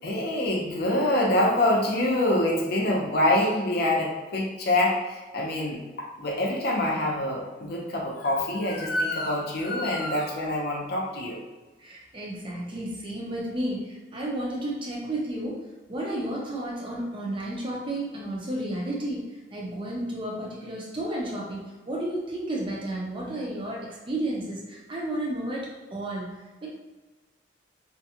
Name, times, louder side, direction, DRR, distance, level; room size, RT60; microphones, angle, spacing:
voice 1, 0.0-11.4, left 1 dB, 55° left, -1 dB, 0.5 m, -25 dB
voice 2, 11.8-15.6 15.9-26.7, right 1 dB, 25° right, -3 dB, 0.5 m, -32 dB
2.5 x 2.2 x 2.8 m, 1.2 s
head